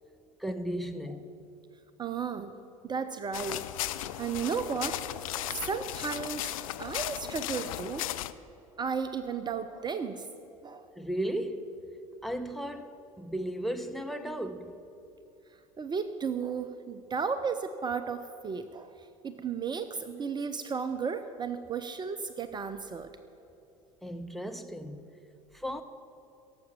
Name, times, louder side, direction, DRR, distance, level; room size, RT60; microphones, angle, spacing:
voice 1, 0.4-1.4 11.0-11.8 12.2-14.8 24.0-25.0 25.5-25.8, right 1 dB, ahead, 0.8 m, -35 dB
voice 2, 2.0-2.6 2.8-3.7 4.0-5.0 5.3-8.1 8.8-10.3 10.6-10.9 15.8-23.1, right 6 dB, 25° right, 0.6 m, -34 dB
sound 1, 3.3-8.3, left 14 dB, 65° left, 0.5 m, -36 dB
17.0 x 7.9 x 7.1 m
figure-of-eight pair, 70°, 19 cm